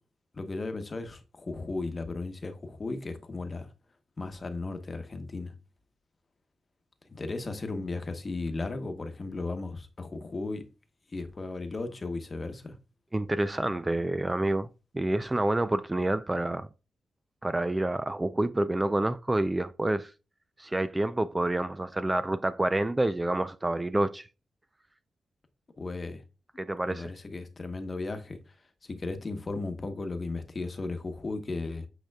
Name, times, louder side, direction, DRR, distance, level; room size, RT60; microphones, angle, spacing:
voice 1, 0.3-3.7 4.2-5.5 7.1-10.6 11.1-12.8 25.8-26.2 26.9-28.4 28.8-31.9, left 3 dB, 35° left, 1.0 m, -35 dB
voice 2, 13.1-14.7 14.9-16.7 17.4-20.1 20.6-24.3 26.6-27.1, right 1 dB, 20° right, 0.4 m, -28 dB
8.9 x 5.1 x 2.3 m
cardioid pair, 75°, 0 cm